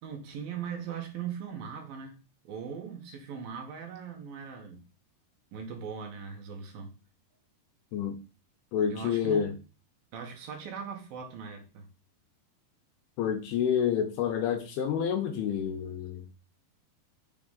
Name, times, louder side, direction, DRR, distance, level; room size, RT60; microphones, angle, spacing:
voice 1, 0.0-2.2 2.4-4.8 5.5-7.0 8.9-9.6 10.1-11.9, right 7 dB, 70° right, 2.8 m, -40 dB
voice 2, 8.7-9.5 13.2-16.3, left 8 dB, 80° left, 2.6 m, -28 dB
6.8 x 3.7 x 3.7 m
omnidirectional pair, 4.7 m